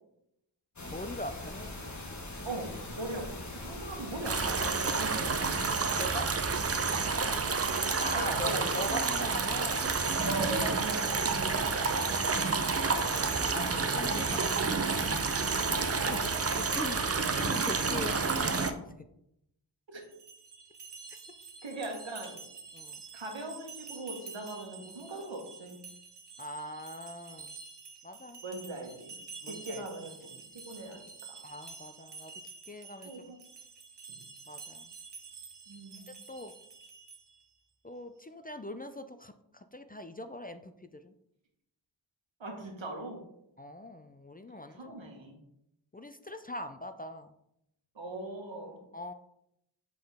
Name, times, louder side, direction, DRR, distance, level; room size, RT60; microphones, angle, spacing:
sound 1, 0.8-5.8, left 2 dB, 40° left, 1.2 m, -41 dB
voice 1, 0.9-1.7 6.0-6.3 8.0-9.9 11.6-12.4 13.2-14.6 16.1-18.9 22.7-23.0 26.4-27.5 28.0-28.4 29.4-29.8 31.4-32.3 32.7-33.1 34.5-34.9 36.3-36.5 37.8-41.1 43.6-45.1 45.9-47.3 48.9-49.1, left 1 dB, 20° left, 9 dB, 0.3 m, -42 dB
voice 2, 2.4-5.5 8.1-8.7 10.2-11.4 13.5-13.8 15.4-15.9 19.9-20.0 21.6-22.4 23.1-25.8 28.4-29.1 29.5-30.2 30.6-31.1 33.0-33.4 34.1-34.2 35.7-36.1 42.4-43.2 44.7-45.4 47.9-48.8, right 2 dB, 85° right, 2 dB, 1.3 m, -40 dB
sound 2, 4.2-18.7, right 4 dB, 35° right, 0.6 m, -29 dB
sound 3, 20.0-37.5, right 4 dB, 65° right, 0.9 m, -49 dB
7.5 x 3.9 x 3.4 m, 0.80 s
wide cardioid pair, 60°, 44 cm